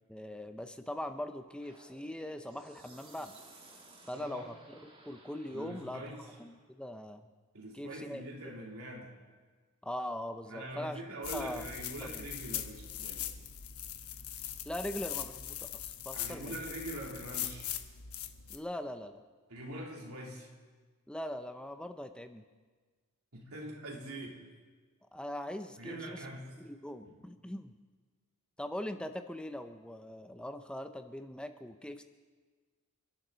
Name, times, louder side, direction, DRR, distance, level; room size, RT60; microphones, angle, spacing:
voice 1, 0.1-3.4 4.1-4.5 5.0-6.0 6.4-7.3 7.7-8.2 9.8-11.0 11.3-11.6 12.0-12.2 14.6-16.6 18.5-19.2 21.1-22.4 25.1-26.2 26.6-27.7 28.6-32.0, left 1 dB, 5° left, 7 dB, 0.6 m, -41 dB
sound 1, 1.6-6.7, right 2 dB, 25° right, 2.1 m, -57 dB
voice 2, 4.1-4.5 5.5-6.3 7.5-9.1 10.4-13.4 16.1-17.7 19.5-20.5 23.3-24.4 25.8-26.6 27.0-27.3, right 1 dB, 80° right, -1 dB, 3.1 m, -43 dB
sound 2, 11.2-18.6, left 10 dB, 80° left, 1.0 m, -41 dB
29.5 x 11.0 x 4.0 m, 1.4 s
head